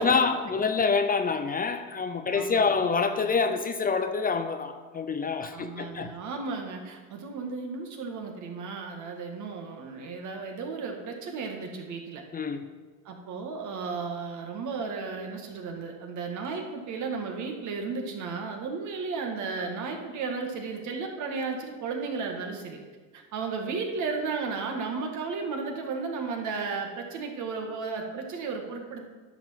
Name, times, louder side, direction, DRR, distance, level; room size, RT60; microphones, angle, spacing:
voice 1, 0.0-6.1 12.3-12.7, left 5 dB, 25° left, 8 dB, 0.6 m, -26 dB
voice 2, 2.3-2.7 5.4-12.2 13.1-22.8 23.1-29.0, right 4 dB, 55° right, 3 dB, 1.9 m, -34 dB
10.5 x 5.9 x 5.9 m, 1.4 s
supercardioid pair, 100°, 35 cm